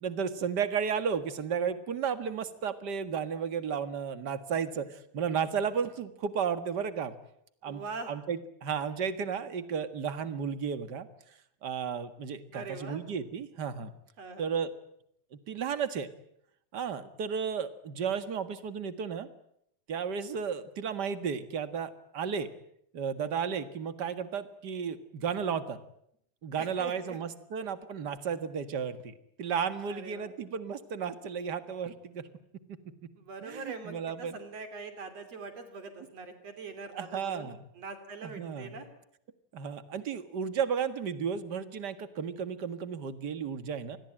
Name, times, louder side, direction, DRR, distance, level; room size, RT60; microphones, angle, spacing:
voice 1, 0.0-7.1 7.6-11.1 11.6-13.9 14.4-14.7 15.3-16.1 16.7-19.3 19.9-22.5 22.9-25.8 26.4-32.3 33.4-34.4 37.0-37.6 38.2-38.8 39.5-44.0, right 7 dB, 40° right, 12 dB, 2.0 m, -33 dB
voice 2, 7.6-8.1 12.5-13.0 14.2-14.5 26.6-27.2 29.9-30.3 33.2-37.5 37.8-38.9, right 4 dB, 60° right, 9 dB, 4.0 m, -43 dB
27.0 x 21.0 x 8.9 m, 0.71 s
omnidirectional pair, 3.3 m